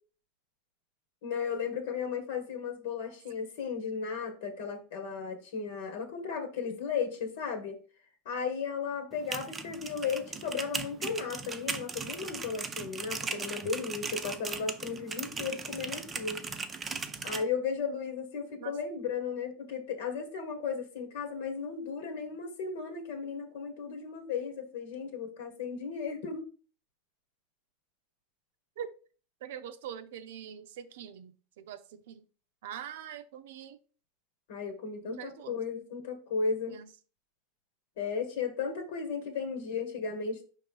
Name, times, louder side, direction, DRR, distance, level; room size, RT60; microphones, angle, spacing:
voice 1, 1.2-7.8 8.2-16.4 17.2-26.5 34.5-36.8 38.0-40.4, left 5 dB, 80° left, 1.4 m, -35 dB
sound 1, 9.1-17.4, right 4 dB, 15° right, 0.5 m, -38 dB
voice 2, 29.4-32.2 32.6-33.8 35.0-35.6 36.7-36.9, right 9 dB, 80° right, 0.6 m, -43 dB
5.4 x 3.2 x 5.3 m
supercardioid pair, 155°, 0 cm